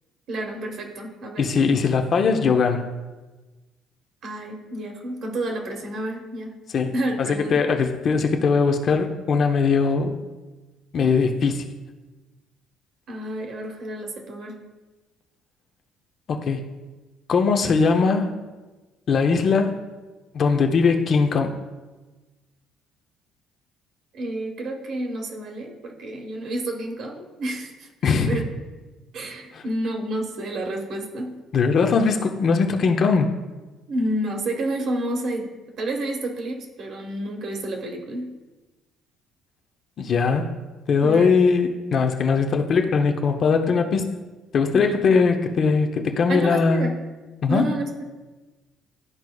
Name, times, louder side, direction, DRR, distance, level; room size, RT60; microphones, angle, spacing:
voice 1, 0.3-1.5 4.2-6.6 6.8-7.6 13.1-14.6 24.1-27.9 28.3-28.5 29.1-31.3 33.9-38.3 41.0-41.4 44.7-45.2 46.3-46.9 47.5-48.0, right 1 dB, 50° right, 0 dB, 1.1 m, -30 dB
voice 2, 1.4-2.9 6.7-6.9 7.3-10.2 10.9-11.6 16.3-16.7 17.3-18.3 19.1-19.8 20.3-21.6 28.0-28.3 31.5-33.3 40.0-40.6 40.9-44.1 44.5-46.9 47.4-47.7, left 5 dB, 40° left, 5 dB, 0.6 m, -20 dB
12.0 x 4.6 x 2.3 m, 1.2 s
cardioid pair, 150°, 0 cm